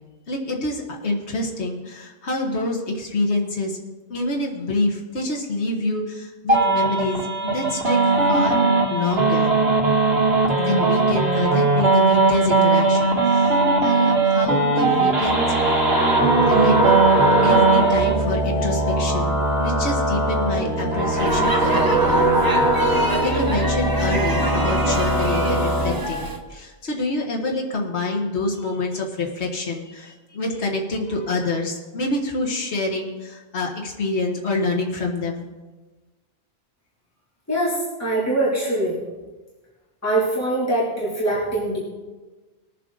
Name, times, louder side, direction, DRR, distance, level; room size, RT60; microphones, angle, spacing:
voice 1, 0.3-3.8 4.1-9.5 10.6-13.6 13.8-15.9 16.5-17.0 17.4-35.5, left 2 dB, 70° left, 0 dB, 1.8 m, -27 dB
sound 1, 6.5-18.1, right 3 dB, 60° right, 2.2 m, -19 dB
sound 2, 15.2-25.9, right 1 dB, 45° left, 3.9 m, -21 dB
Speech / Shout / Subway metro underground, 21.1-26.4, right 2 dB, 20° right, 1.0 m, -28 dB
voice 2, 37.5-39.0 40.0-41.8, right 1 dB, 15° left, -8 dB, 2.9 m, -23 dB
20.5 x 7.6 x 3.9 m, 1.2 s
omnidirectional pair, 1.2 m